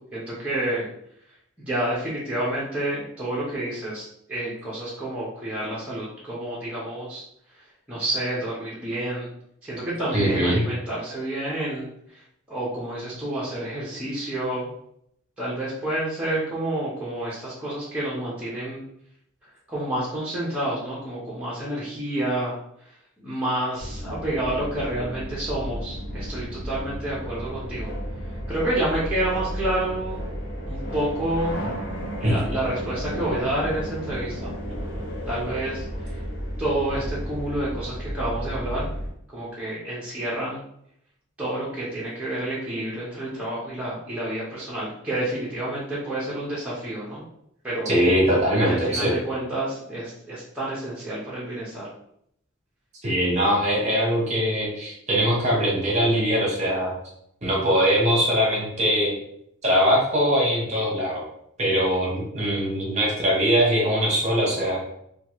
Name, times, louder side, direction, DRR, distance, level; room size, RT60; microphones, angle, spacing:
voice 1, 0.1-0.9 1.6-7.2 7.9-9.3 9.6-12.2 12.5-14.7 15.4-18.8 19.7-22.5 23.2-27.9 28.5-30.2 30.7-31.6 32.2-34.5 35.3-36.2 36.6-38.9 39.3-40.6 41.4-47.2 47.6-47.9 48.7-51.9, right 1 dB, 5° right, -8 dB, 0.6 m, -29 dB
voice 2, 10.1-10.6 32.2-32.3 47.9-49.1 53.0-56.9 57.4-59.2 59.6-61.2 61.6-64.8, equal, 30° right, -3 dB, 0.9 m, -22 dB
sound 1, 23.8-39.1, equal, 55° left, 0.7 m, -33 dB
2.9 x 2.3 x 2.9 m, 0.72 s
head